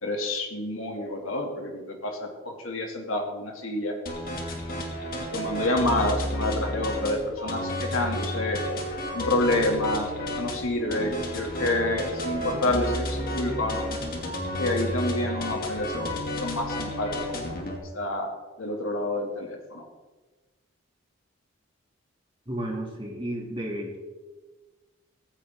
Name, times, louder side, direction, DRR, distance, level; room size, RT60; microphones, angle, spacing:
voice 1, 0.0-4.0 5.3-8.6 9.1-10.1 10.4-13.8 14.6-16.1 16.4-18.3 18.6-19.8, left 1 dB, 85° left, 1 dB, 2.8 m, -28 dB
sound 1, 4.1-17.8, left 1 dB, 45° left, 2.7 m, -32 dB
voice 2, 22.5-24.0, right 1 dB, 25° right, -1 dB, 2.9 m, -32 dB
16.0 x 15.5 x 3.9 m, 1.2 s
head